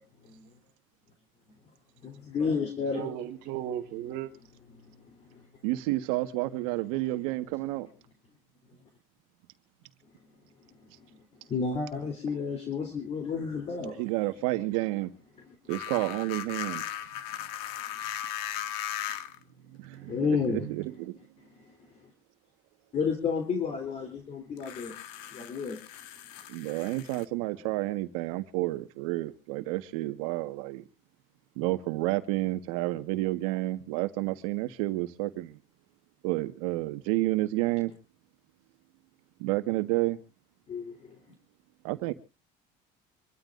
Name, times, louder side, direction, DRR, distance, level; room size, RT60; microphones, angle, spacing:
voice 1, 2.0-3.1 4.7-5.4 11.5-14.0 19.9-20.7 21.6-21.7 22.9-25.0 25.3-25.8 40.7-41.2, left 5 dB, 40° left, 3.5 m, -31 dB
voice 2, 2.9-4.3, right 11 dB, 65° right, 1.5 m, -35 dB
voice 3, 5.6-7.9 13.9-15.1 15.7-16.8 19.7-21.2 26.5-30.8 31.6-35.6 36.2-37.9 39.4-40.2 41.8-42.1, right 18 dB, 90° right, 1.5 m, -30 dB
sound 1, 15.7-19.4 20.4-20.5 24.6-27.2, left 11 dB, 80° left, 1.6 m, -38 dB
26.5 x 13.5 x 2.6 m
cardioid pair, 120°, 17 cm